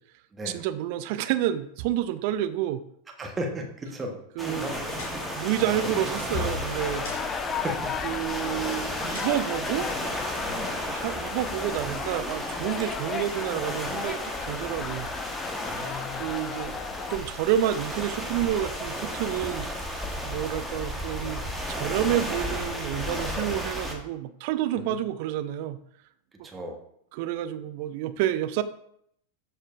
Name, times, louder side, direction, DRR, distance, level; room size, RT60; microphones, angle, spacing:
voice 1, 0.4-2.8 4.4-4.7 5.4-7.0 8.0-9.9 10.9-15.1 16.2-16.8 17.1-19.7 20.2-21.4 21.7-25.8 27.1-28.6, right 12 dB, 45° right, 12 dB, 0.5 m, -29 dB
voice 2, 3.2-4.2 4.4-4.8 5.2-5.3 7.5-7.9 10.4-10.8 15.6-16.3 24.7-25.0 26.4-26.8, right 1 dB, 15° right, 2 dB, 1.2 m, -35 dB
sound 1, 4.4-23.9, equal, 5° left, 1.2 m, -34 dB
sound 2, 4.6-10.6, left 3 dB, 55° left, 2.9 m, -41 dB
sound 3, 6.8-17.2, left 6 dB, 25° left, 0.5 m, -35 dB
13.0 x 4.4 x 2.5 m, 0.71 s
figure-of-eight pair, 90°, 0 cm